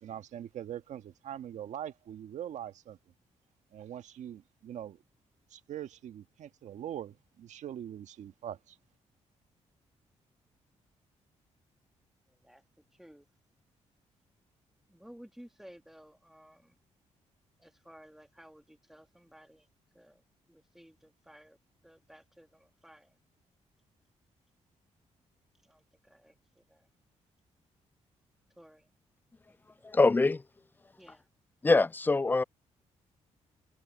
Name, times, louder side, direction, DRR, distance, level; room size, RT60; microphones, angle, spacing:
voice 1, 0.0-3.0 3.7-5.0 5.5-8.7, right 10 dB, 75° right, 1.4 m, -42 dB
voice 2, 12.3-13.3 14.9-16.8 17.6-19.7 19.9-23.2 25.5-26.9 28.5-28.9 29.5-30.0 31.0-31.3, equal, 5° right, 2.0 m, -56 dB
voice 3, 29.8-30.4 31.6-32.4, left 3 dB, 15° left, 0.3 m, -24 dB
cardioid pair, 75°, 12 cm